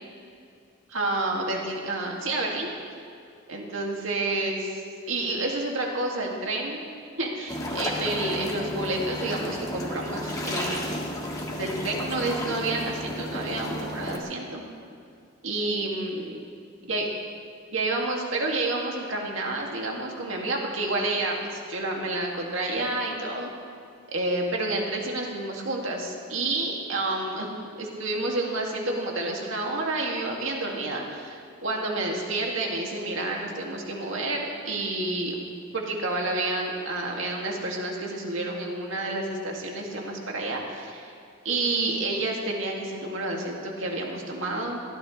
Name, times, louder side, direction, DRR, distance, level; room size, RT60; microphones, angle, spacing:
voice 1, 0.9-2.7 3.5-4.7 5.1-6.8 7.2-11.0 11.5-14.6 15.4-16.4 16.9-17.1 17.7-23.5 24.1-27.5 27.8-35.4 35.7-41.1 41.4-44.8, right 2 dB, 65° right, -1 dB, 2.4 m, -29 dB
sound 1, 7.5-14.2, left 1 dB, 15° left, 1.8 m, -33 dB
22.5 x 16.0 x 3.3 m, 2.4 s
head